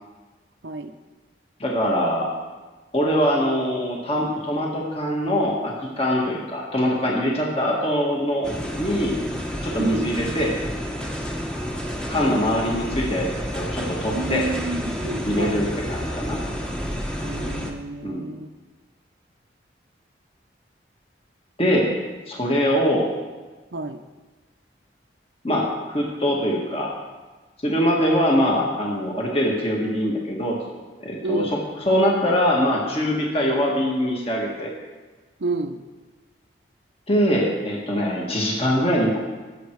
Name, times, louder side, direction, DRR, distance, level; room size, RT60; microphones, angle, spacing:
voice 1, 1.6-2.3 2.9-9.1 9.6-10.5 12.1-14.4 15.3-16.4 18.0-18.3 21.6-21.9 22.3-23.1 25.4-26.9 27.6-30.6 31.0-31.5 31.9-34.7 37.1-39.2, equal, 30° left, -2 dB, 1.9 m, -23 dB
sound 1, 8.4-17.7, equal, 5° left, 1.1 m, -30 dB
voice 2, 9.8-10.1 14.1-15.8 17.2-18.5 23.7-24.0 31.2-31.6 35.4-35.8, right 2 dB, 75° right, 6 dB, 0.8 m, -29 dB
18.5 x 7.9 x 4.7 m, 1.3 s
head